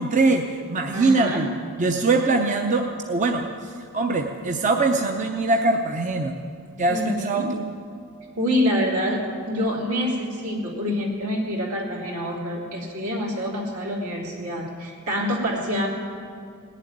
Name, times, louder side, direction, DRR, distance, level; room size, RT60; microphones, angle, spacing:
voice 1, 0.0-1.5 1.8-6.4 6.8-7.7, right 3 dB, 35° right, 3 dB, 0.7 m, -22 dB
voice 2, 0.9-1.4 6.9-7.5 8.4-15.9, equal, 75° right, -2 dB, 3.2 m, -26 dB
18.0 x 7.5 x 9.9 m, 2.3 s
head